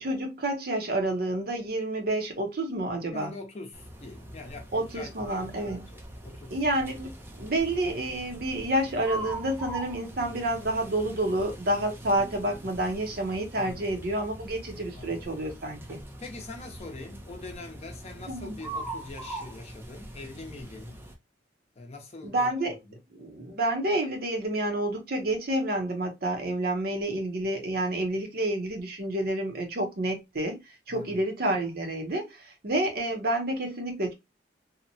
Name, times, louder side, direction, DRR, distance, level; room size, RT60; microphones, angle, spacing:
voice 1, 0.0-3.3 4.7-5.9 6.5-7.1 7.4-16.0 18.3-18.6 22.2-22.7 23.1-30.6 30.9-34.1, right 1 dB, 55° right, 0.7 m, -29 dB
voice 2, 3.1-6.6 13.6-14.0 14.9-15.3 16.2-21.0 21.8-22.5 22.8-23.0 30.9-31.2, left 2 dB, 35° left, 0.7 m, -43 dB
sound 1, 3.7-21.2, right 1 dB, 15° right, 0.4 m, -42 dB
2.8 x 2.1 x 2.6 m
head